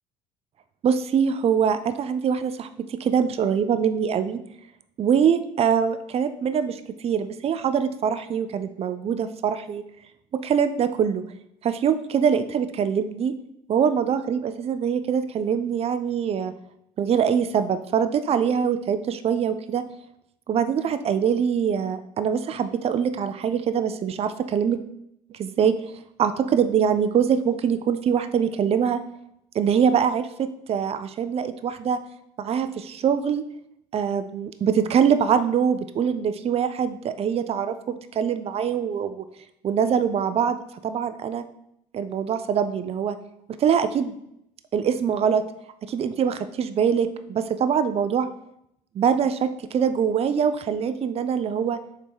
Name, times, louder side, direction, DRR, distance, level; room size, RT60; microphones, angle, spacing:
voice 1, 0.8-4.4 5.0-9.8 10.4-11.2 11.6-13.3 13.7-16.5 17.0-19.8 20.5-24.8 25.3-25.7 26.2-29.0 29.5-32.0 32.4-33.4 33.9-39.2 39.6-40.6 40.8-41.4 41.9-43.2 43.6-44.1 44.7-45.4 45.9-48.3 48.9-51.8, right 7 dB, 35° right, 11 dB, 0.4 m, -23 dB
3.6 x 2.8 x 4.5 m, 0.77 s
supercardioid pair, 75°, 18 cm